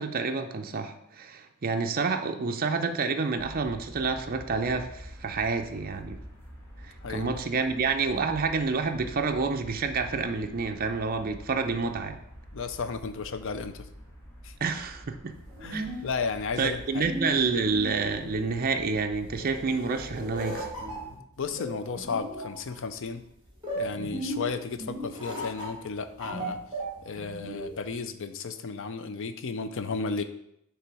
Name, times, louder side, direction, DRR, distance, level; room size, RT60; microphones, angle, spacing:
voice 1, 0.0-6.2 6.8-12.2 14.6-15.3 15.7-15.8 16.6-20.7, right 4 dB, 40° right, 5 dB, 0.5 m, -29 dB
sound 1, 3.4-21.1, equal, 10° left, 1.4 m, -47 dB
voice 2, 7.0-7.4 12.5-13.8 14.4-14.5 15.6-17.1 21.4-23.2 23.8-26.6 27.1-30.2, left 4 dB, 60° left, 10 dB, 0.5 m, -33 dB
sound 2, 15.3-27.9, right 1 dB, 20° right, 2.2 m, -37 dB
6.8 x 3.3 x 4.8 m, 0.77 s
head